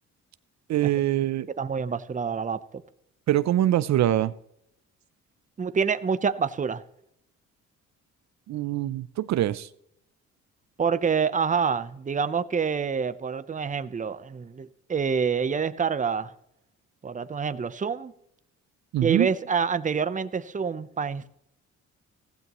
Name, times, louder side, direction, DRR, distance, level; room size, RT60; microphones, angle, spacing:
voice 1, 0.7-1.5 3.3-4.3 8.5-9.7 18.9-19.3, right 13 dB, 65° right, 15 dB, 0.6 m, -24 dB
voice 2, 1.6-2.8 5.6-6.8 10.8-16.3 17.0-18.1 19.0-21.3, right 6 dB, 25° right, 13 dB, 0.8 m, -27 dB
15.5 x 15.0 x 3.1 m, 0.76 s
cardioid pair, 90°, 30 cm